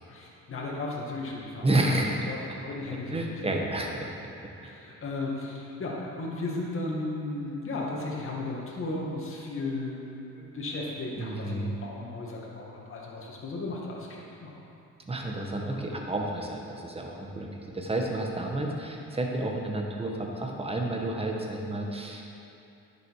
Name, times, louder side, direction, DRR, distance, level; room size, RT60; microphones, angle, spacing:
voice 1, 0.1-1.6 2.3-3.6 4.6-14.5, left 2 dB, 45° left, -3 dB, 2.0 m, -35 dB
voice 2, 1.6-2.2 3.1-4.1 4.6-4.7 11.2-11.7 15.1-17.5 17.7-22.3, right 2 dB, 20° right, 0 dB, 1.4 m, -30 dB
10.5 x 6.6 x 4.8 m, 2.7 s
cardioid pair, 90°, 30 cm